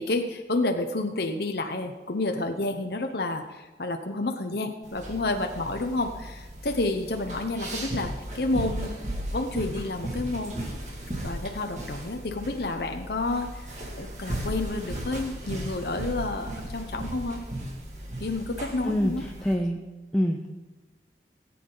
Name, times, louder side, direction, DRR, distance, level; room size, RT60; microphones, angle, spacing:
voice 1, 0.0-8.9 9.3-10.7 11.2-13.7 14.0-17.4 18.2-19.3, left 2 dB, 60° left, 4 dB, 0.9 m, -30 dB
sound 1, 4.8-19.5, right 1 dB, 40° right, 2.2 m, -36 dB
voice 2, 19.4-19.8 20.1-20.5, equal, 5° left, 0 dB, 0.7 m, -25 dB
18.0 x 8.6 x 4.0 m, 1.2 s
head